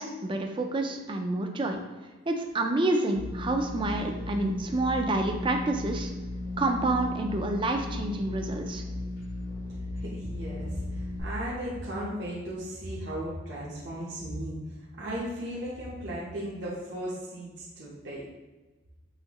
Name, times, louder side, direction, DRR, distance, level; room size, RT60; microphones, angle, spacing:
voice 1, 0.0-1.8 2.3-6.1 6.6-8.8, right 2 dB, 25° right, 4 dB, 0.4 m, -28 dB
sound 1, 3.2-11.2, left 2 dB, 75° left, 1.3 m, -36 dB
voice 2, 9.9-18.2, equal, 60° right, -6 dB, 0.8 m, -36 dB
5.6 x 3.1 x 2.9 m, 1.2 s
head